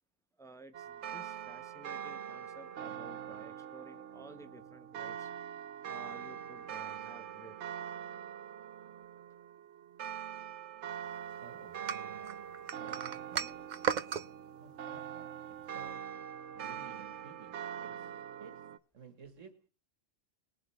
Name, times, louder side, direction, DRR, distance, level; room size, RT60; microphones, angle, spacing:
voice 1, 0.4-5.3 5.9-7.6, right 2 dB, 5° left, 0.9 m, -54 dB
sound 1, 0.7-18.8, right 9 dB, 70° right, 1.0 m, -43 dB
voice 2, 11.4-12.5 12.8-13.7 14.6-15.4 15.7-16.2 16.5-18.1 18.4-19.7, right 6 dB, 90° right, 2.3 m, -54 dB
sound 2, 11.9-14.3, right 7 dB, 45° right, 0.6 m, -35 dB
20.5 x 7.4 x 3.6 m
omnidirectional pair, 1.3 m